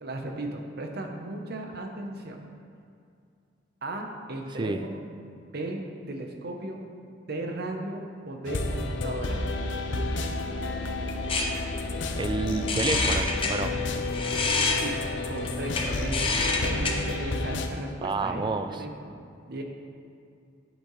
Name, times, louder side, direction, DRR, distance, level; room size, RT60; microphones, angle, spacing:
voice 1, 0.0-2.5 3.8-5.1 5.5-6.8 7.3-9.4 14.8-15.0 15.3-19.2 19.5-19.6, right 2 dB, 60° right, 3 dB, 0.9 m, -36 dB
sound 1, 8.4-17.7, left 2 dB, 85° left, 0.6 m, -31 dB
Metal screeching, 10.1-16.9, left 3 dB, 30° left, 0.8 m, -30 dB
voice 2, 12.2-13.8 18.0-18.8, right 3 dB, 25° right, 9 dB, 0.4 m, -29 dB
8.5 x 8.2 x 3.2 m, 2.4 s
head